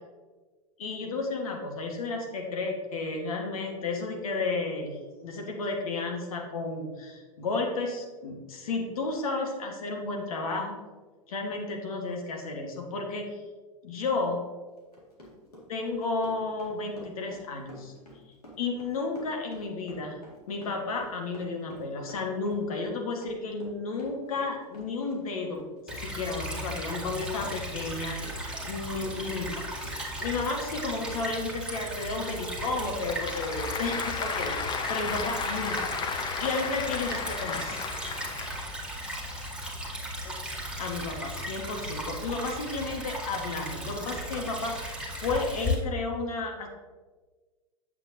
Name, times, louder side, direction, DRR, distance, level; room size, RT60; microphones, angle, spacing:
voice 1, 0.8-10.8 11.3-13.4 13.8-14.5 15.7-17.9 18.6-20.2 20.5-25.6 26.0-28.2 28.6-29.6 30.2-35.9 36.4-37.8 40.2-40.4 40.8-46.7, left 3 dB, 70° left, 2 dB, 1.5 m, -32 dB
Run, 14.8-29.6 29.8-31.4 31.7-31.9 32.1-32.3 32.6-32.7, left 1 dB, 90° left, 2.0 m, -49 dB
Stream / Trickle dribble, 25.9-45.7, equal, 5° right, 1.5 m, -36 dB
Applause / Crowd, 32.6-38.8, left 6 dB, 25° left, 0.7 m, -34 dB
8.1 x 7.2 x 2.7 m, 1.3 s
figure-of-eight pair, 95°, 19 cm